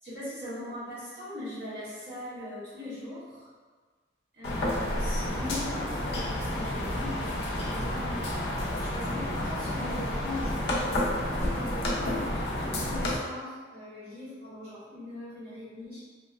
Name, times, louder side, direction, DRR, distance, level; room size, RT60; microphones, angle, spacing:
voice 1, 0.0-3.5 4.3-16.0, left 1 dB, 70° right, -11 dB, 1.5 m, -40 dB
sound 1, 4.4-13.2, left 1 dB, 65° left, 0.5 m, -30 dB
2.8 x 2.1 x 2.3 m, 1.5 s
head